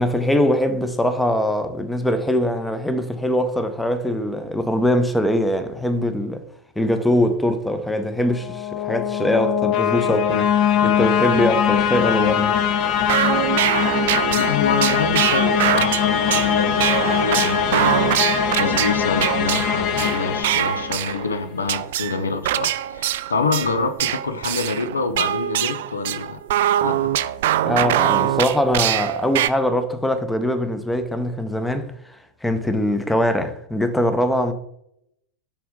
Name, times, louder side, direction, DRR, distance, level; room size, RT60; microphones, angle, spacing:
voice 1, 0.0-6.4 6.8-10.6 10.8-12.5 27.6-31.9 32.4-34.5, left 1 dB, 5° left, 0.7 m, -22 dB
sound 1, 8.3-21.3, left 9 dB, 40° left, 0.7 m, -21 dB
sound 2, 12.8-21.4 21.7-29.5, right 13 dB, 55° right, 0.3 m, -23 dB
voice 2, 14.2-26.4 26.8-27.0, left 4 dB, 70° left, 0.7 m, -26 dB
6.8 x 5.2 x 3.8 m
figure-of-eight pair, 90°, 0 cm